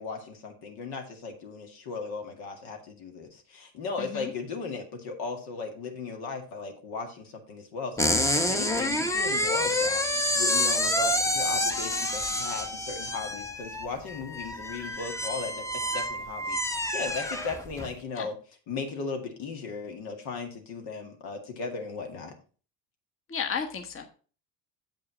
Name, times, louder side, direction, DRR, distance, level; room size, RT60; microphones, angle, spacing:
voice 1, 0.0-10.0 10.3-18.4 18.7-22.3, left 4 dB, 75° left, 3 dB, 2.1 m, -37 dB
voice 2, 4.0-4.3 18.1-18.3 23.3-24.0, left 6 dB, 35° left, 4 dB, 1.2 m, -33 dB
sound 1, 8.0-17.9, left 1 dB, 10° left, 0.8 m, -28 dB
7.7 x 5.4 x 4.9 m, 0.39 s
supercardioid pair, 90°, 38 cm